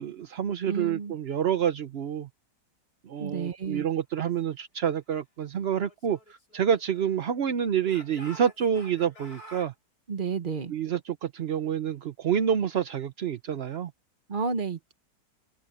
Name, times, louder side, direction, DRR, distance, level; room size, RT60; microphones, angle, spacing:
voice 1, 0.0-2.3 3.0-9.7 10.7-13.9, right 8 dB, 55° right, 0.7 m, -28 dB
voice 2, 0.7-1.1 3.2-3.9 10.1-10.7 14.3-14.9, right 5 dB, 30° right, 1.2 m, -31 dB
Speech / Shout, 5.8-7.4 7.8-9.7, equal, 55° left, 6.2 m, -49 dB
omnidirectional pair, 1.9 m